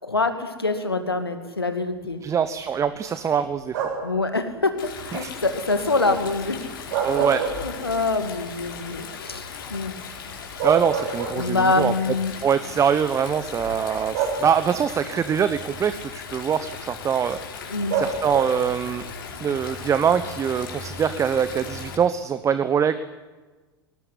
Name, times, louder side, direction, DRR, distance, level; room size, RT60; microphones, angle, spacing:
voice 1, 0.0-2.2 4.0-6.6 7.2-10.0 11.4-12.3 17.7-18.0, left 3 dB, 85° left, 8 dB, 2.4 m, -25 dB
voice 2, 2.2-3.8 5.1-5.3 7.0-7.4 10.6-11.9 12.3-19.0 19.4-23.0, right 7 dB, 25° right, 12 dB, 1.1 m, -23 dB
sound 1, 3.7-4.2 6.7-8.1 8.5-8.6 10.1-10.2 10.6-11.7 12.8-12.9 14.1-14.9 17.9-18.8, right 6 dB, 55° right, 7.5 m, -27 dB
Stream, 4.8-21.9, left 5 dB, 65° left, 4.8 m, -37 dB
21.0 x 18.5 x 9.8 m, 1.3 s
figure-of-eight pair, 80°, 12 cm